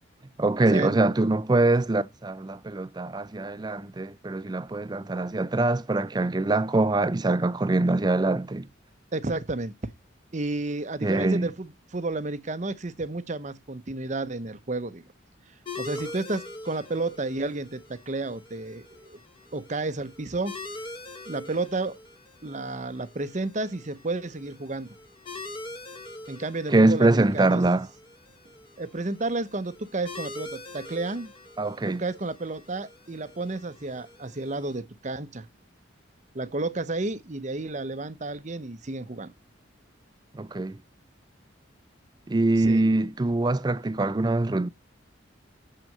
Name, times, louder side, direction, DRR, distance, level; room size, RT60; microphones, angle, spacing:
voice 1, 0.4-8.7 11.0-11.5 26.7-27.9 31.6-32.0 40.3-40.8 42.3-44.7, right 2 dB, 20° right, 0.4 m, -23 dB
voice 2, 9.1-9.7 10.3-15.0 15.8-19.2 19.5-20.5 21.3-22.0 22.4-24.9 26.3-27.6 28.8-31.3 31.9-35.5 36.3-39.3 42.6-42.9, right 2 dB, 35° right, 0.8 m, -31 dB
sound 1, 15.7-34.8, left 2 dB, 25° left, 1.5 m, -44 dB
6.9 x 6.0 x 7.3 m
head